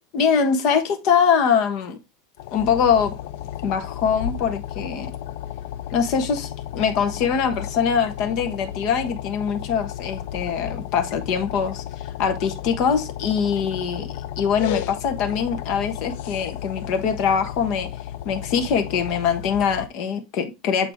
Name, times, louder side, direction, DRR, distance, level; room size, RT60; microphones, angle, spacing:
voice 1, 0.1-2.0 2.5-3.1 3.6-5.1 5.9-17.9 18.2-20.9, left 7 dB, 40° left, 1.3 m, -23 dB
sound 1, 2.4-19.9, left 11 dB, 65° left, 0.5 m, -33 dB
8.8 x 3.9 x 3.6 m
supercardioid pair, 170°, 0 cm